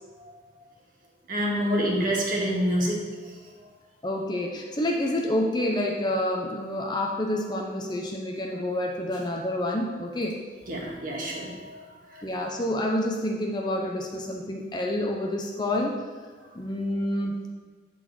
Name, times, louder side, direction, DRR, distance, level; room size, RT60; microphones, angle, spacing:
voice 1, 1.3-3.0 10.7-12.2, equal, 45° right, -3 dB, 1.8 m, -27 dB
voice 2, 4.0-10.4 12.2-16.0 16.5-17.5, left 1 dB, 20° left, 0 dB, 0.6 m, -28 dB
11.5 x 4.1 x 4.7 m, 1.5 s
head